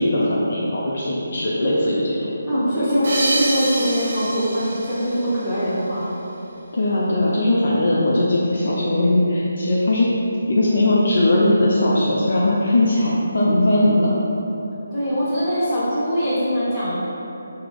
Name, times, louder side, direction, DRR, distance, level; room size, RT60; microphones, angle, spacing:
voice 1, 0.0-2.3 6.7-10.1 10.5-14.2, left 1 dB, 60° left, -5 dB, 0.4 m, -19 dB
voice 2, 2.5-6.1 14.9-16.9, equal, 15° left, -15 dB, 1.3 m, -22 dB
sound 1, 3.0-6.1, right 2 dB, 55° right, 0.5 m, -27 dB
3.4 x 2.0 x 3.1 m, 2.9 s
figure-of-eight pair, 155°, 0 cm